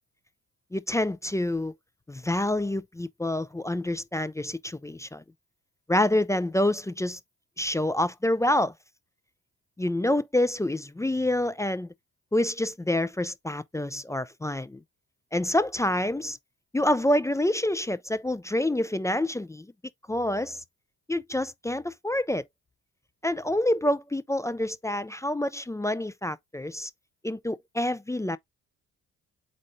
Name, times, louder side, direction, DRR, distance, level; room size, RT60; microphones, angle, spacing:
voice 1, 0.7-1.7 2.1-5.2 5.9-7.2 7.6-8.7 9.8-11.9 12.3-14.8 15.3-16.4 16.7-19.7 20.1-20.6 21.1-22.4 23.2-26.9 27.2-28.4, left 1 dB, 10° left, 0.3 m, -27 dB
4.2 x 2.6 x 4.9 m
supercardioid pair, 60°, 36 cm